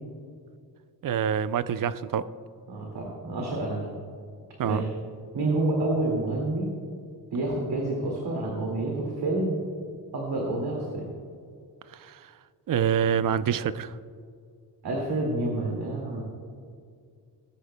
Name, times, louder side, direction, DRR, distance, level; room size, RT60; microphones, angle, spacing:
voice 1, 1.0-2.3 4.6-4.8 11.9-12.3 12.7-14.0, right 8 dB, 60° right, 14 dB, 0.5 m, -26 dB
voice 2, 2.7-3.9 4.6-4.8 5.3-6.7 7.3-9.6 10.1-11.1 14.8-16.2, right 2 dB, 80° right, -2 dB, 2.2 m, -28 dB
19.5 x 10.5 x 2.2 m, 2.3 s
cardioid pair, 95°, 38 cm